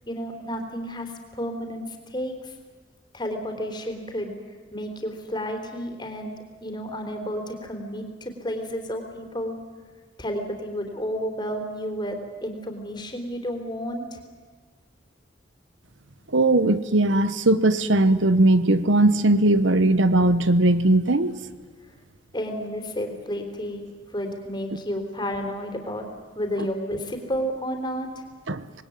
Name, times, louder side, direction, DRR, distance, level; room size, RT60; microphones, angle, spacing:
voice 1, 0.1-2.5 3.1-4.4 4.7-6.3 6.6-9.6 10.2-14.2 22.3-23.9 24.1-26.1 26.4-28.2, equal, 25° left, 3.6 m, -31 dB
voice 2, 16.3-21.4 26.6-26.7 28.5-28.7, right 2 dB, 75° right, 1.1 m, -19 dB
26.0 x 20.5 x 9.5 m
head